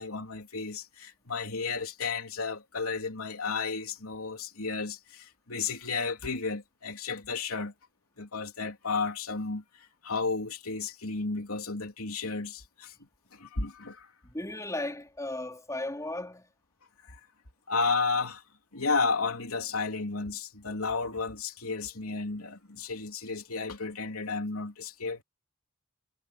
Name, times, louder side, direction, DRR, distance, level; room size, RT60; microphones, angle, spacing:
voice 1, 0.0-7.7 8.2-12.9 13.3-14.1 17.0-17.2 17.7-18.4 18.7-25.2, left 4 dB, 85° left, 3.4 m, -33 dB
voice 2, 14.2-16.5, left 1 dB, 15° left, 4.1 m, -35 dB
head